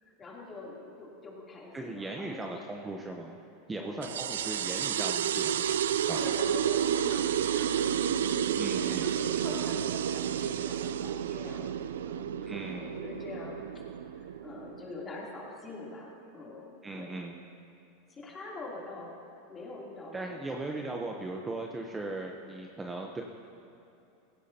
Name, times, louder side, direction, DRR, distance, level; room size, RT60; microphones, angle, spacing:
voice 1, 0.0-2.9 3.8-4.6 6.2-8.5 8.8-11.7 12.0-13.6 14.1-17.1 18.1-19.2 19.5-20.6, left 3 dB, 25° left, -3 dB, 3.3 m, -44 dB
voice 2, 1.7-3.4 3.7-5.8 6.1-6.2 8.6-9.1 12.5-12.9 16.8-17.4 20.1-23.2, right 2 dB, 15° right, 1 dB, 0.9 m, -38 dB
sound 1, 4.0-15.0, right 9 dB, 85° right, 0.4 m, -31 dB
16.5 x 15.5 x 2.9 m, 2.8 s
hypercardioid pair, 115°, 0 cm